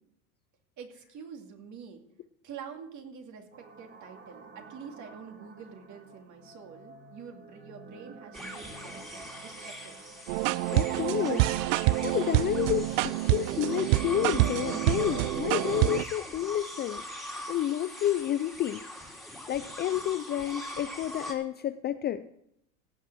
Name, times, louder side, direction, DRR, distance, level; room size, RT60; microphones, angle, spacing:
voice 1, 0.8-2.0 2.4-9.1 9.3-10.0, right 6 dB, 40° right, 4 dB, 2.5 m, -46 dB
sound 1, 3.5-10.3, right 3 dB, 25° right, 1.7 m, -50 dB
sound 2, 8.3-21.3, equal, ahead, 2.6 m, -42 dB
sound 3, 10.3-16.0, right 18 dB, 60° right, 0.5 m, -27 dB
voice 2, 10.7-11.5 11.9-22.2, left 11 dB, 25° left, 11 dB, 0.4 m, -30 dB
17.0 x 5.9 x 6.1 m, 0.74 s
hypercardioid pair, 100°, 43 cm